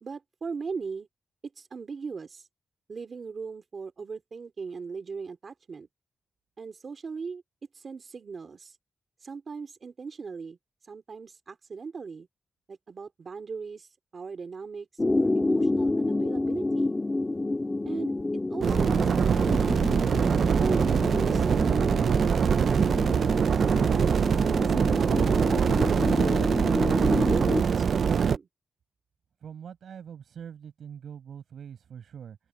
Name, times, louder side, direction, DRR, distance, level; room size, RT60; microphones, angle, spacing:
voice 1, 0.0-1.1 1.6-2.5 2.9-5.9 6.6-7.4 7.7-8.8 9.2-10.6 10.8-12.3 12.7-16.9 17.8-18.1 18.5-19.7 20.2-28.5, right 5 dB, 40° right, 2.9 m, -38 dB
sound 1, 15.0-27.6, left 2 dB, 15° left, 3.2 m, -29 dB
sound 2, 18.6-28.4, right 6 dB, 60° right, 0.5 m, -23 dB
voice 2, 29.4-32.4, right 8 dB, 85° right, 6.4 m, -43 dB
open air
wide cardioid pair, 175°, 0 cm